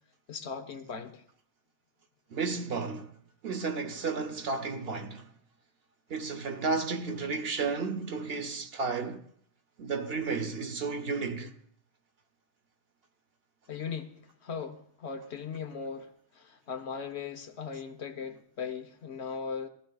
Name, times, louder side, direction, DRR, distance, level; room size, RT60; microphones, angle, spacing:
voice 1, 0.3-1.2 13.7-19.7, left 6 dB, 65° left, 1.1 m, -38 dB
voice 2, 2.3-3.1 3.4-5.3 6.1-9.2 9.8-11.5, right 4 dB, 60° right, 1.1 m, -32 dB
19.5 x 15.5 x 2.3 m
omnidirectional pair, 1.2 m